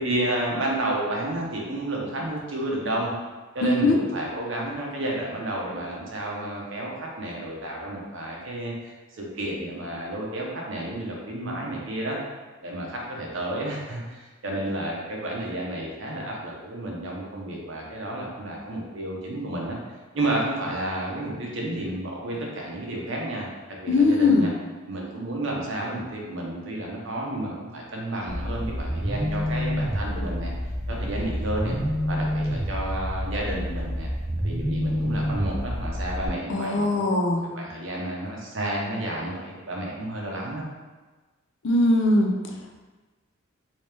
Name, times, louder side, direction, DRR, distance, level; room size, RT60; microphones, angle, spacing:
voice 1, 0.0-3.1 3.5-8.7 9.2-12.2 12.6-19.8 20.1-23.5 23.8-24.5 24.9-30.5 30.9-31.7 32.1-34.1 34.4-37.0 37.3-40.6, right 1 dB, 65° right, -2 dB, 0.8 m, -31 dB
voice 2, 3.6-4.0 23.9-24.5 36.5-37.4 41.6-42.8, left 2 dB, 65° left, 1 dB, 0.5 m, -21 dB
sound 1, 28.3-36.3, equal, 15° right, 0.4 m, -28 dB
3.1 x 2.8 x 3.3 m, 1.3 s
head